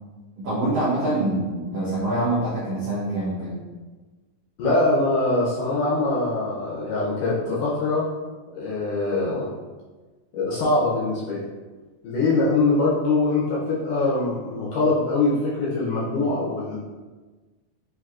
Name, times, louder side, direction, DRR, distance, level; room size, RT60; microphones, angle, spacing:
voice 1, 0.4-3.6, right 2 dB, 80° right, -10 dB, 1.4 m, -25 dB
voice 2, 4.6-8.1 8.5-9.5 10.3-11.4 12.0-16.8, left 2 dB, 75° left, -6 dB, 1.9 m, -23 dB
6.1 x 2.7 x 2.4 m, 1.3 s
omnidirectional pair, 4.2 m